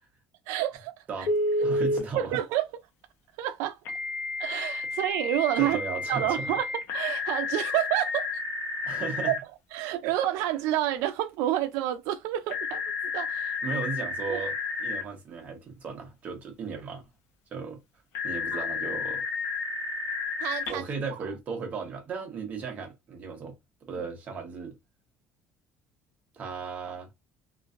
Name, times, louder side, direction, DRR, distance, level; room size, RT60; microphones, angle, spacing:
voice 1, 0.5-1.3 1.6-1.7 2.1-2.6 3.4-3.8 4.4-5.8 6.1-8.4 9.3-9.4 9.7-12.8 13.1-13.8 14.3-14.4 18.5-18.7 20.4-20.8, right 13 dB, 80° right, 0.3 m, -29 dB
Telephone, 1.3-2.0 3.8-9.4 12.5-15.0 18.1-20.7, left 3 dB, 60° left, 0.8 m, -31 dB
voice 2, 1.6-2.4 5.6-6.5 8.8-9.3 13.6-17.0 17.5-17.8 18.2-19.2 20.7-23.5 23.9-24.7 26.3-27.1, right 5 dB, 30° right, 0.8 m, -36 dB
3.0 x 2.5 x 2.4 m
cardioid pair, 170°, 5 cm